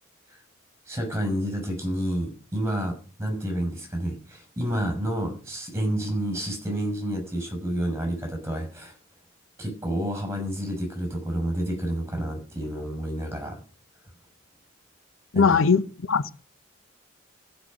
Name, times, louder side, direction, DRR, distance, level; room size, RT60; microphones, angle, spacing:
voice 1, 0.9-8.9 9.6-13.6 15.3-15.6, right 1 dB, 15° right, 6.4 m, -29 dB
voice 2, 15.3-16.3, left 5 dB, 75° left, 0.7 m, -20 dB
14.5 x 6.5 x 9.5 m
head